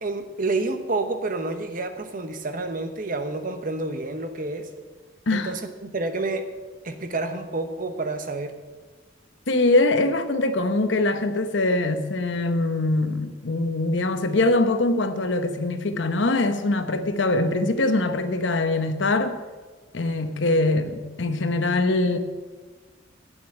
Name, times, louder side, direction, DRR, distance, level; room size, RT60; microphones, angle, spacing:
voice 1, 0.0-4.7 5.3-6.5 6.8-8.5, right 2 dB, 45° right, 1.0 m, -29 dB
voice 2, 9.5-19.4 19.9-22.2, left 2 dB, 70° left, 0.9 m, -23 dB
9.1 x 7.8 x 8.5 m
head